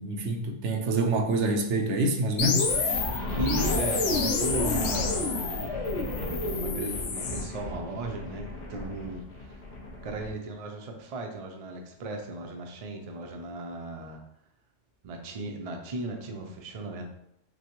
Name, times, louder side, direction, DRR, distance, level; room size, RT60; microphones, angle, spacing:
voice 1, 0.0-2.7, right 2 dB, 80° right, 0.9 m, -26 dB
sound 1, 2.4-7.5, left 4 dB, 80° left, 0.9 m, -29 dB
sound 2, 2.7-10.3, left 1 dB, 55° left, 1.2 m, -35 dB
voice 2, 3.3-5.7 6.2-9.6 10.0-14.2 15.0-17.1, right 2 dB, 45° right, 0.5 m, -36 dB
5.9 x 2.1 x 3.0 m
omnidirectional pair, 1.2 m